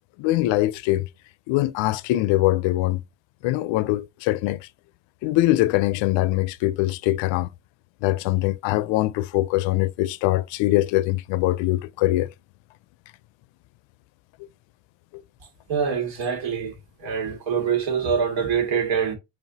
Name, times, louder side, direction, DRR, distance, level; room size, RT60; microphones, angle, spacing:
voice 1, 0.2-1.1 1.5-3.0 3.4-4.7 5.2-7.5 8.0-12.3 15.1-15.2, left 17 dB, 80° left, 0.5 m, -22 dB
voice 2, 15.7-16.7 17.0-19.2, right 6 dB, 75° right, 1.9 m, -24 dB
4.8 x 3.2 x 2.7 m
cardioid pair, 170°, 45 cm